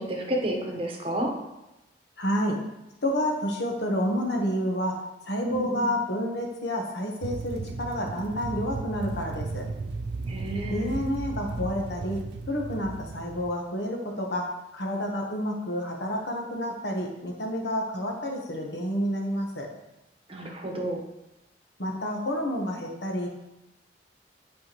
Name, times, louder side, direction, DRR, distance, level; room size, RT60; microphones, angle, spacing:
voice 1, 0.0-1.3 5.5-5.9 10.3-10.9 20.3-21.0, right 1 dB, 30° right, 1 dB, 1.0 m, -30 dB
voice 2, 2.2-2.6 3.0-9.7 10.7-12.2 12.5-19.7 21.8-23.3, equal, 70° left, 1 dB, 1.2 m, -29 dB
sound 1, 7.2-13.5, right 3 dB, 70° right, 0.4 m, -35 dB
8.5 x 4.8 x 3.1 m, 0.93 s
head